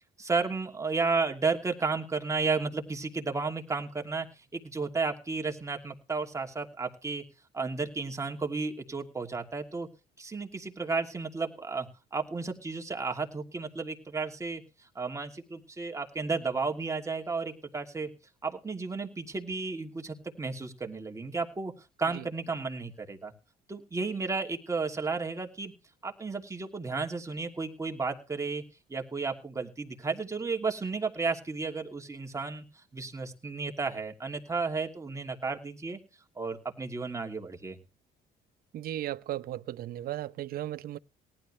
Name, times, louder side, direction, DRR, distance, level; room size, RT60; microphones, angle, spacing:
voice 1, 0.2-4.3 4.5-7.2 7.5-9.9 10.2-14.6 14.9-18.1 18.4-21.7 22.0-23.3 23.7-25.7 26.0-28.6 28.9-32.6 32.9-36.0 36.4-37.8, right 4 dB, 20° right, 2.8 m, -33 dB
voice 2, 38.7-41.0, right 13 dB, 60° right, 0.8 m, -36 dB
18.5 x 12.0 x 3.3 m
cardioid pair, 110°, 17 cm